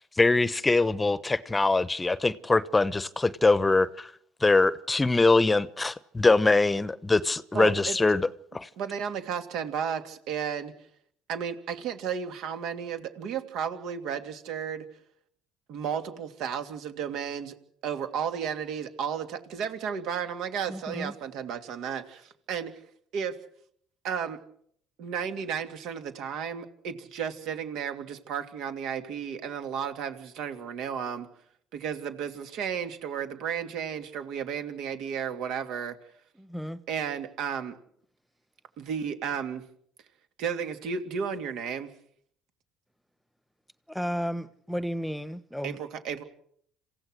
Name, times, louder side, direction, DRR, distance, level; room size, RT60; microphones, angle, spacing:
voice 1, 0.0-4.1 4.4-8.3 8.5-8.7, left 3 dB, 20° left, 0.9 m, -23 dB
voice 2, 7.5-8.0 8.8-10.7 11.3-14.9 15.7-17.5 17.8-22.7 23.1-23.4 24.0-24.4 25.0-31.3 31.7-36.0 36.9-37.7 38.8-39.6 40.4-41.9 45.6-46.2, right 7 dB, 70° right, 2.7 m, -33 dB
voice 3, 20.7-21.1 36.3-36.8 43.9-45.8, equal, ahead, 1.3 m, -33 dB
27.5 x 16.0 x 6.5 m
supercardioid pair, 80°, 0 cm